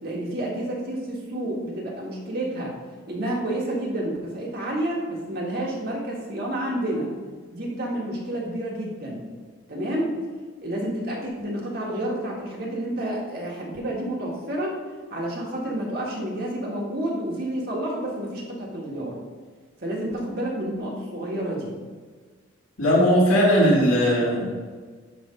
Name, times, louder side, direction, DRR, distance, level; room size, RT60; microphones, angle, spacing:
voice 1, 0.0-2.8 3.1-7.1 7.5-9.2 9.7-10.2 10.6-14.8 15.1-19.2 19.8-21.7, right 1 dB, 50° right, -3 dB, 1.7 m, -29 dB
voice 2, 22.8-24.5, equal, 90° left, -4 dB, 2.0 m, -18 dB
10.0 x 3.6 x 5.2 m, 1.5 s
head